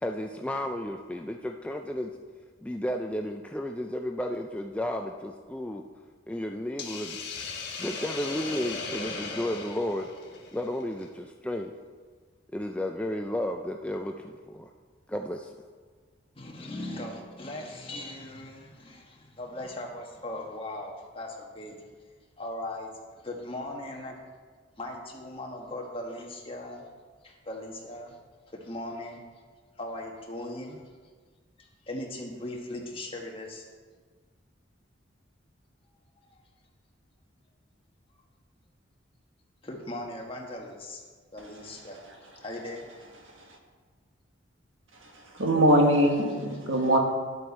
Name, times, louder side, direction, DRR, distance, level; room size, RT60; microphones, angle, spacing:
voice 1, 0.0-2.1 2.6-5.8 6.3-7.2 7.8-10.1 10.5-11.7 12.5-14.7 15.1-15.5, left 1 dB, 5° left, 3 dB, 0.3 m, -33 dB
Hiss, 6.8-11.1, left 3 dB, 60° left, 1.4 m, -37 dB
voice 2, 16.3-21.8 22.4-24.1 24.8-26.9 27.2-28.2 28.5-29.2 29.8-30.8 31.6-33.6 36.3-36.4 39.6-41.0 41.3-42.0 42.4-42.9, left 1 dB, 30° left, -1 dB, 1.4 m, -39 dB
voice 3, 45.3-47.0, right 1 dB, 90° right, 2 dB, 1.5 m, -22 dB
11.0 x 7.8 x 4.2 m, 1.5 s
head